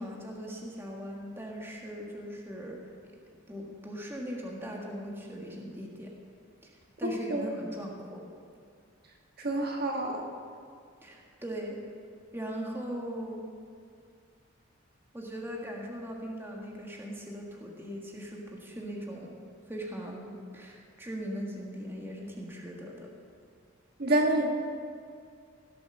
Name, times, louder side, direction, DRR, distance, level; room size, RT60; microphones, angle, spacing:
voice 1, 0.0-2.8 3.5-6.1 6.6-6.7 7.0-8.2 11.0-11.8 12.3-13.4 15.1-19.3 19.7-23.1, equal, 10° right, -1 dB, 1.6 m, -39 dB
voice 2, 7.0-7.5 9.4-10.2 24.0-24.5, right 1 dB, 50° right, 1 dB, 1.5 m, -28 dB
16.5 x 7.8 x 6.5 m, 2.2 s
head